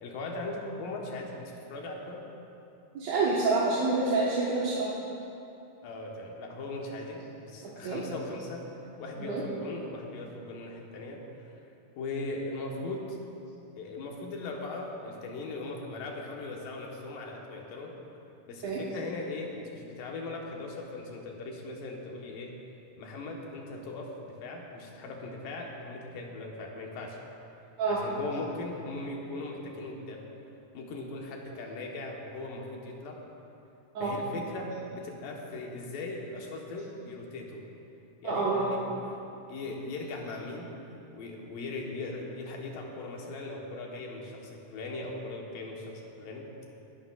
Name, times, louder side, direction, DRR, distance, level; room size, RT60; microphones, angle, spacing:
voice 1, 0.0-2.2 5.8-8.7 9.0-11.5 11.9-13.2 13.8-17.9 18.5-22.5 23.0-27.2 27.9-30.3 30.7-33.2 34.0-37.7 38.2-39.2 39.5-40.8 41.1-46.5, left 2 dB, 80° left, 0 dB, 3.0 m, -39 dB
voice 2, 2.9-4.9 7.8-8.0 9.2-9.4 18.6-18.8 27.8-28.0 33.9-34.1 38.2-38.6, right 3 dB, 60° right, -6 dB, 2.3 m, -27 dB
21.0 x 11.5 x 2.4 m, 2.8 s
omnidirectional pair, 3.9 m